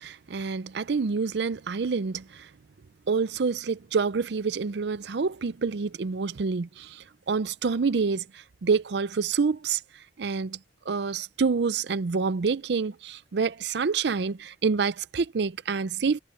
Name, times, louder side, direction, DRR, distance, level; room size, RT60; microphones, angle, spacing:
voice 1, 0.0-2.5 3.1-9.8 10.2-10.6 10.9-16.2, right 5 dB, 65° right, 0.5 m, -27 dB
head